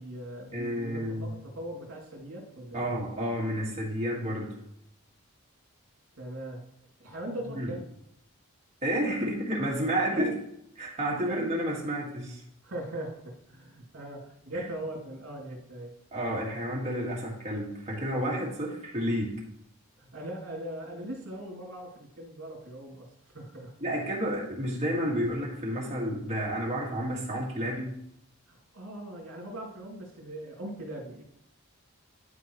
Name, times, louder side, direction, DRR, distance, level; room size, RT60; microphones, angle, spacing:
voice 1, 0.0-2.9 6.2-6.6 7.0-7.9 10.1-10.3 11.2-11.5 12.6-15.9 20.0-23.7 28.5-31.3, right 1 dB, 65° right, -2 dB, 2.7 m, -40 dB
voice 2, 0.5-1.3 2.7-4.6 7.6-7.7 8.8-10.3 10.8-12.4 14.5-14.7 16.1-19.4 23.8-28.0, equal, 30° right, -3 dB, 1.9 m, -30 dB
11.5 x 4.7 x 3.1 m, 0.76 s
head